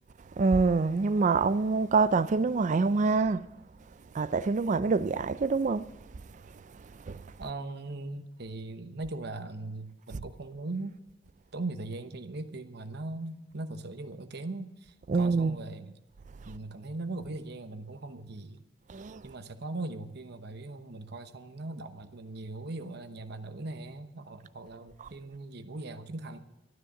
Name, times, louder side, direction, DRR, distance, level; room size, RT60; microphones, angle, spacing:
voice 1, 0.4-3.5 4.1-5.9 6.5-7.3 15.1-15.6 18.9-19.2 25.0-25.1, right 4 dB, 40° right, 0.4 m, -26 dB
voice 2, 7.4-11.0 11.5-16.0 16.4-18.6 19.2-26.4, right 2 dB, 60° right, 1.0 m, -39 dB
12.5 x 9.9 x 7.1 m
head